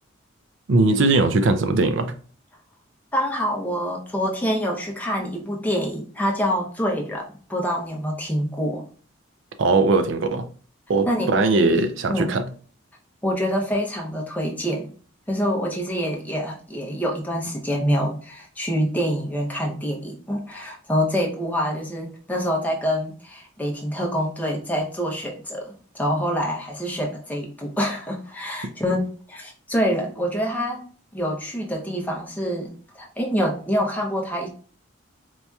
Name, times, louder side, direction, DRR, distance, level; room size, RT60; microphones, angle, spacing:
voice 1, 0.7-2.2 9.6-10.5 10.9-12.5, right 3 dB, 65° right, 0.4 m, -20 dB
voice 2, 3.1-8.9 11.1-11.7 12.1-12.3 13.2-14.9 15.3-30.8 31.1-34.5, equal, 10° left, 0.6 m, -26 dB
4.4 x 2.8 x 2.3 m
head